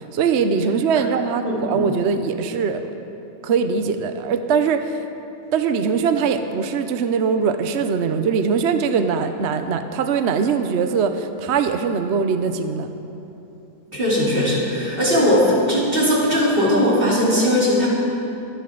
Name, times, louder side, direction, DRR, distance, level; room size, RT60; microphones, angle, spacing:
voice 1, 0.0-2.8 3.4-4.9 5.5-12.9, right 6 dB, 55° right, 8 dB, 0.8 m, -21 dB
voice 2, 1.4-1.8 13.9-17.9, equal, 35° right, -7 dB, 3.7 m, -19 dB
25.5 x 11.0 x 3.9 m, 2.9 s
omnidirectional pair, 1.7 m